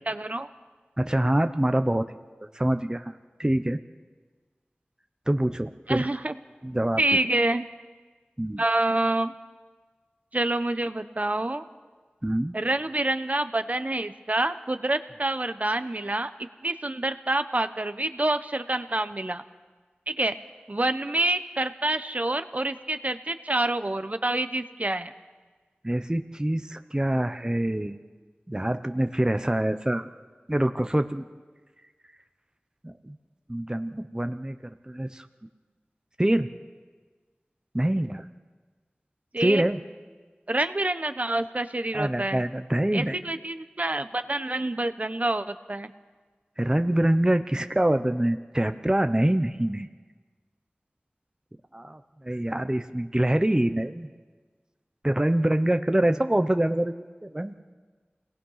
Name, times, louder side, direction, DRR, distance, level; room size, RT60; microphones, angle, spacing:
voice 1, 0.1-0.5 5.9-6.3 7.0-7.7 8.6-9.3 10.3-11.6 12.5-16.3 16.6-19.4 20.1-20.3 20.7-25.1 39.3-39.6 40.5-42.4 42.9-45.9, right 2 dB, 40° right, 10 dB, 1.0 m, -27 dB
voice 2, 1.0-2.2 2.5-3.8 5.3-6.1 6.6-7.0 8.4-8.6 12.2-12.6 25.8-28.0 28.5-30.1 30.5-31.3 32.8-33.2 33.5-34.6 34.9-35.3 36.2-36.5 37.7-38.2 39.4-39.8 41.9-43.2 46.6-49.9 51.7-54.1 55.0-57.7, right 1 dB, 20° right, 8 dB, 0.9 m, -25 dB
28.5 x 19.0 x 5.8 m, 1.4 s
wide cardioid pair, 55°, 4 cm